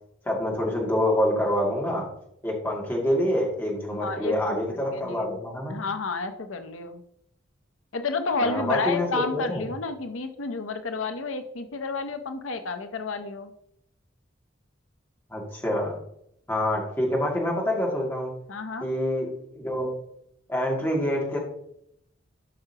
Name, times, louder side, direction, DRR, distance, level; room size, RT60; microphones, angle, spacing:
voice 1, 0.2-2.1 2.4-5.8 8.4-9.6 15.3-16.0 16.5-18.3 18.8-19.9 20.5-21.4, left 1 dB, 10° left, -3 dB, 2.3 m, -26 dB
voice 2, 3.9-5.4 5.7-7.0 7.9-13.5 18.5-18.9, left 4 dB, 85° left, 9 dB, 0.7 m, -31 dB
12.5 x 5.8 x 2.9 m, 0.73 s
head